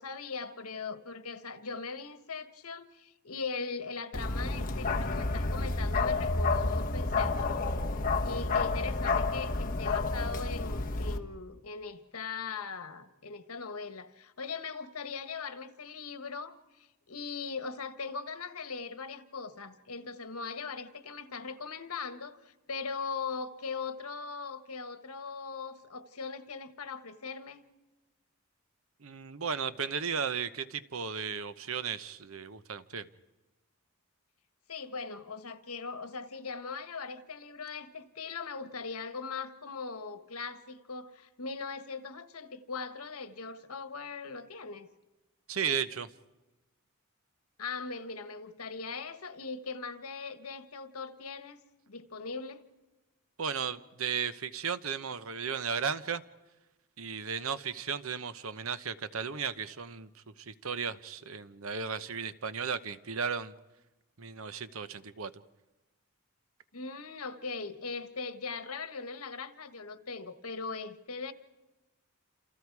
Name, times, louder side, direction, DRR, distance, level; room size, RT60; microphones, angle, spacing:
voice 1, 0.0-16.6 17.1-27.6 34.7-44.9 47.6-51.6 51.9-52.6 66.7-71.3, left 4 dB, 85° left, 1.4 m, -40 dB
Bark, 4.1-11.2, left 3 dB, 40° left, 1.4 m, -30 dB
voice 2, 29.0-33.1 45.5-46.1 53.4-56.2 57.0-63.5 64.2-65.3, right 6 dB, 70° right, 0.9 m, -35 dB
28.5 x 28.5 x 4.8 m
head